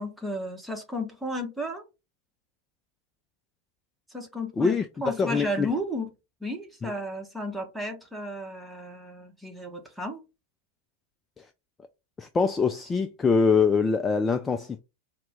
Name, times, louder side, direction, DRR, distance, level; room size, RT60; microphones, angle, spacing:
voice 1, 0.0-1.8 4.1-4.8 5.0-6.1 6.4-10.2, left 1 dB, 5° right, 1.0 m, -33 dB
voice 2, 5.2-5.7 6.8-6.9 11.4-11.5 12.2-14.8, left 5 dB, 15° left, 0.3 m, -24 dB
4.3 x 2.1 x 3.4 m
figure-of-eight pair, 90°, 0 cm